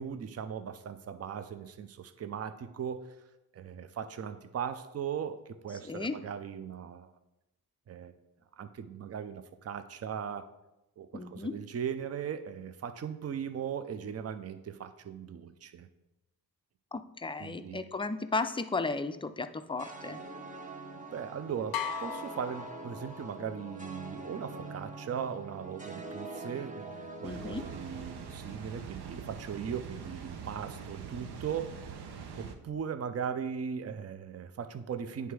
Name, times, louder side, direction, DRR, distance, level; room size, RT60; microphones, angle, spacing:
voice 1, 0.0-3.1 3.5-7.1 7.9-8.1 8.6-10.5 11.0-15.9 17.4-17.8 21.0-32.1 32.4-35.3, right 7 dB, 40° right, 10 dB, 0.5 m, -38 dB
voice 2, 5.8-6.2 11.1-11.5 16.9-20.2 27.2-27.6, left 3 dB, 15° left, 9 dB, 0.4 m, -34 dB
sound 1, 19.8-29.1, right 3 dB, 20° right, 0.9 m, -44 dB
sound 2, 21.7-23.5, left 8 dB, 65° left, 0.5 m, -38 dB
Water, 27.2-32.6, right 6 dB, 90° right, 0.8 m, -44 dB
9.3 x 3.4 x 4.7 m, 0.96 s
cardioid pair, 85°, 39 cm